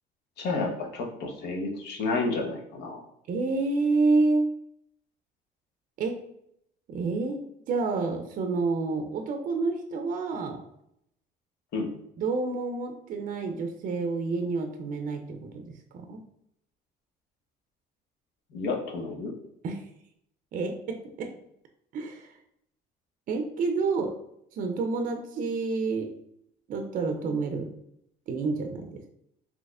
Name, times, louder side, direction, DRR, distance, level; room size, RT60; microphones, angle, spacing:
voice 1, 0.4-3.0 11.7-11.9 18.5-19.3, left 3 dB, 70° left, 1 dB, 0.8 m, -30 dB
voice 2, 3.3-4.5 6.0-6.2 6.9-10.6 12.2-16.2 19.6-19.8 20.5-21.3 21.9-22.3 23.3-24.1 24.5-26.1 26.7-27.7 28.3-29.1, right 3 dB, 50° right, 5 dB, 0.4 m, -29 dB
4.0 x 2.9 x 2.4 m, 0.75 s
cardioid pair, 110°, 17 cm